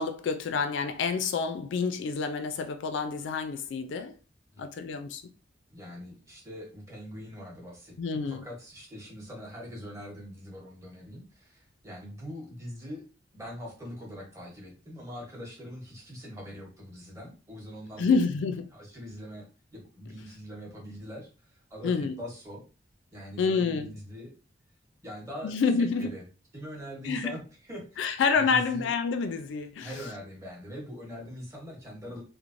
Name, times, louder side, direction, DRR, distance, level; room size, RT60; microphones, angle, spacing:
voice 1, 0.0-4.1 4.6-5.2 8.0-8.5 18.0-18.7 21.8-22.2 23.4-23.9 25.4-26.1 27.0-27.3 28.0-29.9, left 5 dB, 70° left, 0.3 m, -28 dB
voice 2, 5.7-13.0 13.3-18.2 18.7-19.5 19.7-22.6 23.1-24.3 25.0-25.5 25.8-26.2 26.5-28.9 29.8-32.2, equal, 15° right, 0.9 m, -42 dB
3.1 x 2.0 x 2.5 m
head